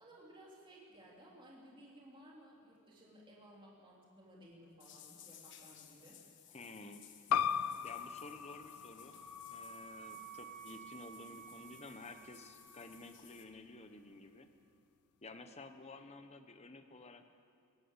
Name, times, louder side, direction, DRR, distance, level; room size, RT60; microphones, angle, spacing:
voice 1, 0.0-6.2, right 1 dB, 20° right, -4 dB, 3.3 m, -58 dB
sound 1, 4.8-13.4, left 9 dB, 55° left, 1.6 m, -59 dB
voice 2, 6.5-7.0 7.8-9.2 9.5-14.5 15.2-17.2, left 2 dB, 30° left, 8 dB, 1.2 m, -52 dB
sound 2, 7.3-12.5, left 8 dB, 85° left, 0.5 m, -39 dB
Wind instrument woodwind instrument, 8.5-13.2, right 4 dB, 10° left, 2.7 m, -53 dB
20.0 x 16.0 x 8.2 m, 2.2 s
head